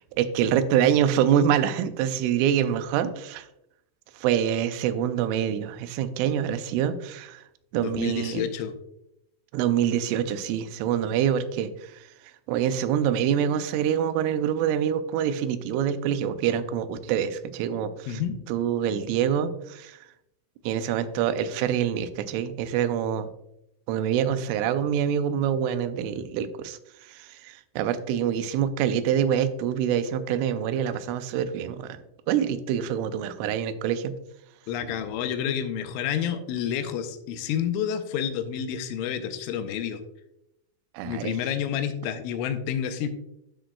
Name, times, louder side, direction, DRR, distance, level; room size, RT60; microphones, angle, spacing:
voice 1, 0.2-3.5 4.2-7.4 7.7-8.4 9.5-12.1 12.5-18.2 18.5-20.0 20.6-23.3 23.9-32.0 32.3-34.1 34.8-34.9 40.9-41.3, right 9 dB, 85° right, 11 dB, 3.0 m, -26 dB
voice 2, 7.8-8.8 18.1-18.4 34.7-40.0 41.0-43.1, left 8 dB, 85° left, 8 dB, 3.1 m, -29 dB
12.5 x 6.3 x 2.3 m, 0.83 s
omnidirectional pair, 5.6 m